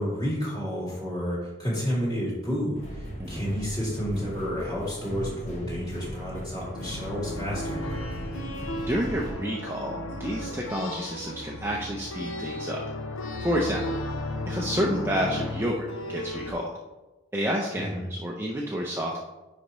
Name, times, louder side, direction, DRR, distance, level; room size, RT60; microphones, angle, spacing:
voice 1, 0.0-7.8 17.8-18.0, equal, 20° left, -7 dB, 2.3 m, -30 dB
sound 1, 2.7-9.3, equal, 35° left, 1.2 m, -38 dB
sound 2, 6.7-16.5, left 1 dB, 75° left, 0.7 m, -35 dB
voice 2, 8.8-12.8 13.4-13.9 14.5-15.8 16.1-16.7 17.3-19.2, equal, 10° right, -2 dB, 0.5 m, -29 dB
9.9 x 4.2 x 3.0 m, 1.1 s
head